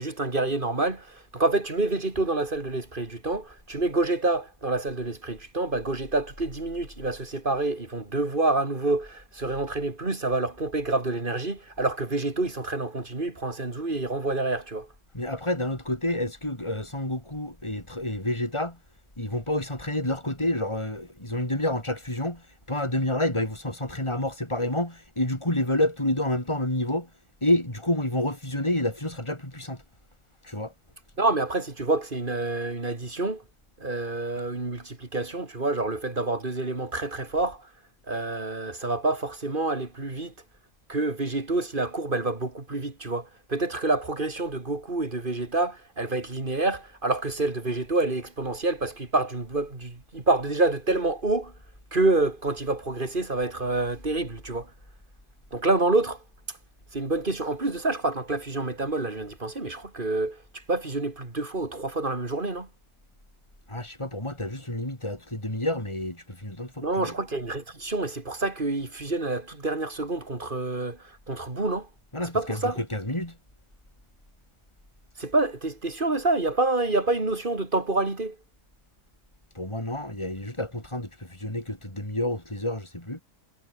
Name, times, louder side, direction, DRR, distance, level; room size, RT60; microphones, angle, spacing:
voice 1, 0.0-14.9 31.2-33.4 33.8-37.7 38.1-40.3 40.9-51.5 51.9-54.7 55.5-56.2 56.9-62.7 66.8-71.9 72.3-72.8 75.2-78.4, right 2 dB, 40° right, 3.0 m, -27 dB
voice 2, 15.1-18.8 19.2-27.1 27.4-29.8 30.4-30.7 63.7-67.1 72.1-73.4 79.6-83.2, left 1 dB, 20° left, 5.7 m, -29 dB
omnidirectional pair, 1.4 m